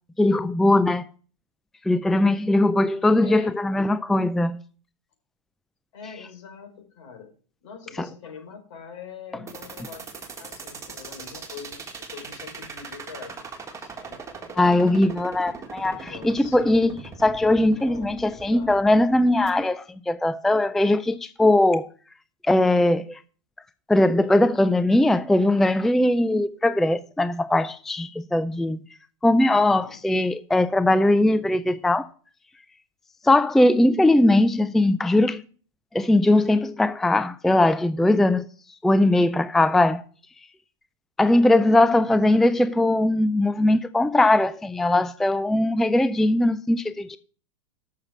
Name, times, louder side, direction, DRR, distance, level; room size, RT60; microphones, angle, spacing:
voice 1, 0.2-1.1 1.9-4.6 14.6-16.9 17.2-21.9 22.5-23.2 23.9-28.8 29.2-32.1 33.2-35.4 35.9-38.4 38.8-40.0 41.2-47.2, left 1 dB, ahead, 0.3 m, -20 dB
voice 2, 3.2-3.5 5.9-7.3 7.6-11.8 12.1-14.2 15.8-16.9 17.6-18.8 29.5-29.9 41.9-42.2, left 6 dB, 70° left, 4.5 m, -43 dB
sound 1, 9.5-19.5, right 4 dB, 20° right, 1.6 m, -40 dB
7.3 x 6.6 x 6.1 m
hypercardioid pair, 120°, 16 cm